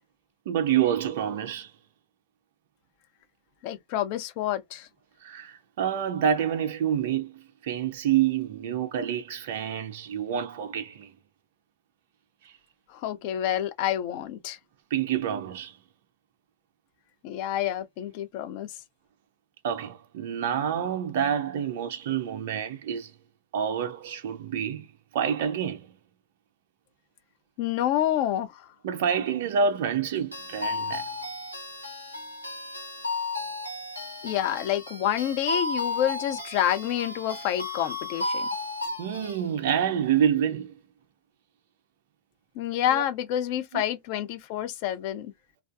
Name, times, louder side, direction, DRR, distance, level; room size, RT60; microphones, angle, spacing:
voice 1, 0.5-1.7 5.2-11.1 12.4-12.5 14.9-15.8 19.6-23.1 23.5-24.9 25.1-25.9 28.8-31.0 39.0-40.7 42.9-43.0 43.7-43.8, right 8 dB, 55° right, 0.4 m, -27 dB
voice 2, 3.6-4.9 12.9-14.6 17.2-18.7 27.6-28.7 34.2-38.5 42.6-45.3, left 11 dB, 45° left, 0.5 m, -28 dB
sound 1, 30.3-39.4, left 2 dB, 85° left, 0.7 m, -34 dB
2.5 x 2.3 x 2.3 m
figure-of-eight pair, 90°, 0 cm